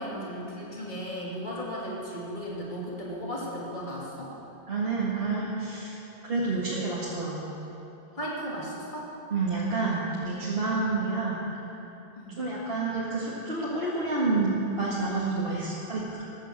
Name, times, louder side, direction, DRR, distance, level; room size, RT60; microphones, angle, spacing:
voice 1, 0.0-4.3 8.2-9.1 12.2-12.4, equal, 50° left, -5 dB, 2.8 m, -35 dB
voice 2, 4.7-6.0 6.2-7.5 9.3-11.4 12.4-16.2, right 3 dB, 70° right, -8 dB, 2.3 m, -29 dB
14.5 x 10.5 x 7.6 m, 3.0 s
omnidirectional pair, 1.0 m